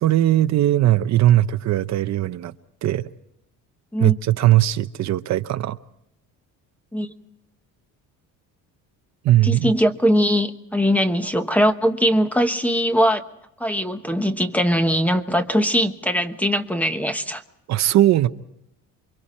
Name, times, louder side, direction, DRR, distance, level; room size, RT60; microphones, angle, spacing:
voice 1, 0.0-2.5 2.8-3.1 4.0-5.8 9.2-9.7 17.7-18.3, right 14 dB, 55° right, 10 dB, 0.8 m, -19 dB
voice 2, 9.4-13.2 13.6-17.4, equal, 5° left, 8 dB, 1.1 m, -21 dB
28.5 x 24.0 x 4.3 m, 0.80 s
cardioid pair, 145°, 33 cm